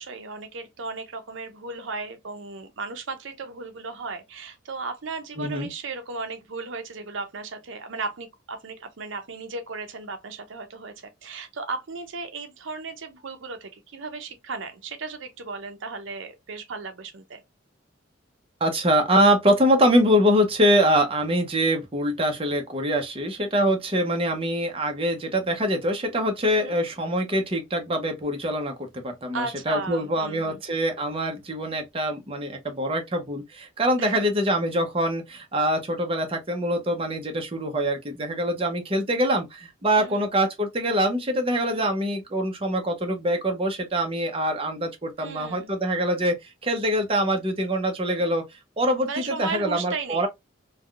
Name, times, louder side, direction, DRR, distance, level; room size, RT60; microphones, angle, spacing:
voice 1, 0.0-17.4 26.5-26.7 29.3-30.6 34.0-34.2 40.0-40.3 41.6-41.8 45.2-45.7 49.1-50.3, right 4 dB, 70° right, 0.6 m, -35 dB
voice 2, 5.4-5.7 18.6-46.4 46.6-48.4 48.8-50.3, equal, 30° right, 0.7 m, -24 dB
3.4 x 2.2 x 2.3 m
head